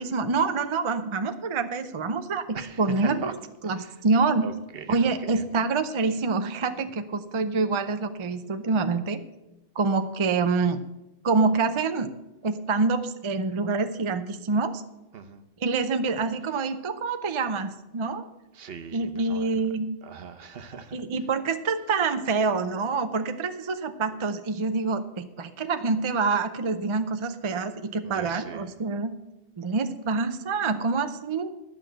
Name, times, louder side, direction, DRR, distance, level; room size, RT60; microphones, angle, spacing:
voice 1, 0.0-3.3 3.6-4.5 4.9-9.2 9.8-10.8 11.2-12.1 12.4-14.8 15.6-18.3 18.9-19.9 20.9-29.1 29.6-31.5, right 4 dB, 35° right, 8 dB, 0.6 m, -26 dB
voice 2, 2.5-3.3 3.7-3.9 4.4-5.4 15.1-15.4 18.5-19.5 20.0-21.0 28.0-28.7, right 6 dB, 65° right, 7 dB, 1.0 m, -39 dB
11.5 x 6.0 x 7.7 m, 0.96 s
omnidirectional pair, 1.1 m